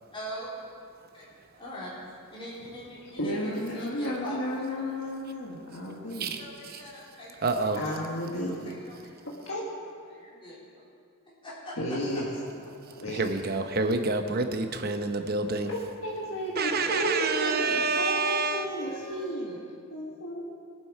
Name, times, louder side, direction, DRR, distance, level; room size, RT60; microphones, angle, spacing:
voice 1, 0.1-0.5 1.1-1.3 1.6-1.9 2.3-4.4 4.8-4.9 6.4-7.7 8.5-9.0 10.0-10.8 11.4-11.8 16.8-17.1 17.4-17.9 18.7-19.6, equal, 25° left, -9 dB, 3.9 m, -42 dB
voice 2, 3.2-6.3 7.8-8.7 9.5-9.6 11.8-12.2 13.0-13.2 15.7-19.6 19.9-20.4, equal, 65° left, -4 dB, 1.6 m, -33 dB
voice 3, 6.1-6.8 7.4-7.8 13.1-15.7 16.6-18.8, right 3 dB, 45° right, 6 dB, 0.8 m, -28 dB
21.0 x 7.8 x 4.7 m, 2.2 s
head